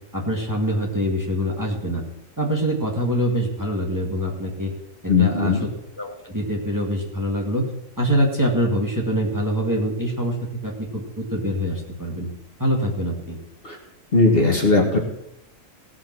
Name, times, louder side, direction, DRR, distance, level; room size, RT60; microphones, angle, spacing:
voice 1, 0.1-2.0 2.4-4.7 5.0-5.7 5.9-7.7 8.0-10.4 10.6-12.3 12.6-13.4, equal, 15° right, -1 dB, 2.0 m, -24 dB
voice 2, 5.1-5.6 13.6-13.8 14.1-15.0, left 3 dB, 45° left, 2 dB, 1.8 m, -18 dB
17.5 x 6.0 x 6.1 m, 0.80 s
omnidirectional pair, 1.4 m